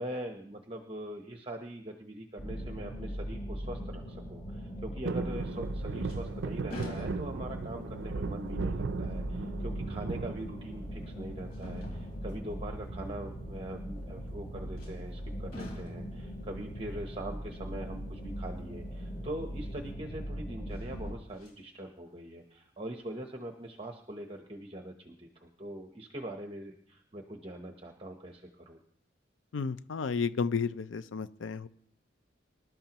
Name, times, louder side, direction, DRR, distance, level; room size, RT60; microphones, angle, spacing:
voice 1, 0.0-28.8, right 1 dB, 30° right, 3 dB, 0.9 m, -42 dB
sound 1, 2.4-21.1, equal, 25° left, 3.6 m, -40 dB
sound 2, 5.0-11.2 11.6-12.3 13.5-14.0 14.2-14.3 14.6-14.9 15.7-16.6 17.1-17.2, right 4 dB, 75° right, 0.4 m, -38 dB
sound 3, 5.3-5.7 6.0-7.6 8.2-8.3 10.2-10.3 11.5-12.4 14.7-15.2 15.5-16.2 19.2-19.3 20.7-21.6 22.1-22.2, left 1 dB, 50° left, 4.5 m, -46 dB
voice 2, 29.5-31.7, left 5 dB, 85° left, 14 dB, 0.5 m, -32 dB
25.5 x 12.0 x 3.0 m, 0.69 s
head